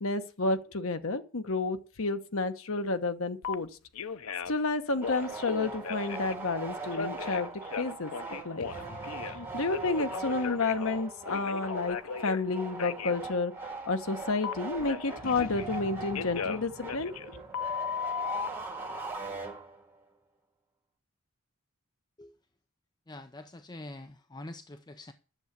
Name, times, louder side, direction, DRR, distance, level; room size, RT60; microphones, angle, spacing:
voice 1, 0.0-3.7 4.5-7.5 7.8-8.1 8.4-8.7 9.3-17.4, left 3 dB, 70° left, 1.1 m, -31 dB
Telephone, 3.4-3.5 3.9-4.6 5.0-6.3 6.9-9.4 9.7-12.4 12.8-13.2 14.4-15.8 16.1-18.5, left 6 dB, 85° left, 0.7 m, -36 dB
sound 1, 5.0-20.0, right 3 dB, 10° right, 4.6 m, -41 dB
sound 2, 8.6-12.3 15.2-19.0, left 2 dB, 45° left, 0.9 m, -49 dB
voice 2, 23.1-25.1, left 2 dB, 20° left, 0.6 m, -45 dB
10.5 x 7.1 x 8.2 m
head